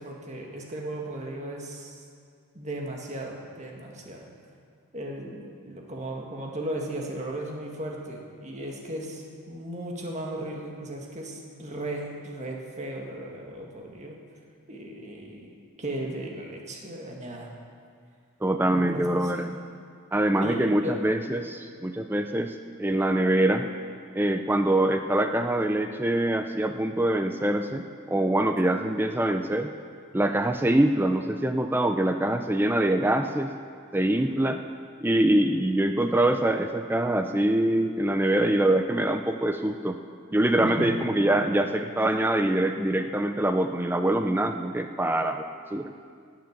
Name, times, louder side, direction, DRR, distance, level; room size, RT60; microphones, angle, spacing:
voice 1, 0.0-2.0 2.5-4.3 4.9-14.2 14.7-17.5 18.6-19.5 20.4-21.0 28.7-28.8 40.6-40.9, right 1 dB, 30° right, -1 dB, 1.9 m, -36 dB
voice 2, 18.4-19.6 20.1-23.7 24.2-29.7 30.1-33.5 33.9-34.6 35.0-40.0 40.3-45.9, right 1 dB, 10° right, 7 dB, 0.4 m, -24 dB
18.5 x 7.7 x 7.3 m, 2.2 s
head